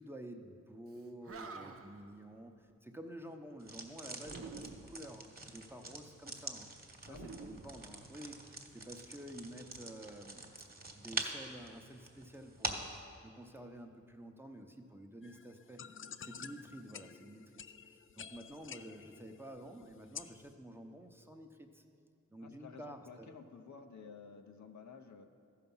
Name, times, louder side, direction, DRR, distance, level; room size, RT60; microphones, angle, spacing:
voice 1, 0.0-6.7 7.1-10.5 10.9-15.8 16.2-17.4 17.9-21.8 22.3-23.3, right 1 dB, 10° right, 4 dB, 0.8 m, -50 dB
Animal, 0.9-1.0 1.2-2.1 4.2-5.1 7.1-8.4, right 4 dB, 50° right, 0.7 m, -49 dB
sound 1, 3.6-13.0, right 2 dB, 30° right, 1.3 m, -45 dB
sound 2, 15.2-20.5, left 7 dB, 45° left, 0.4 m, -51 dB
voice 2, 22.4-25.2, left 5 dB, 70° left, 5 dB, 0.8 m, -53 dB
13.5 x 5.8 x 5.5 m, 2.3 s
cardioid pair, 60°, 30 cm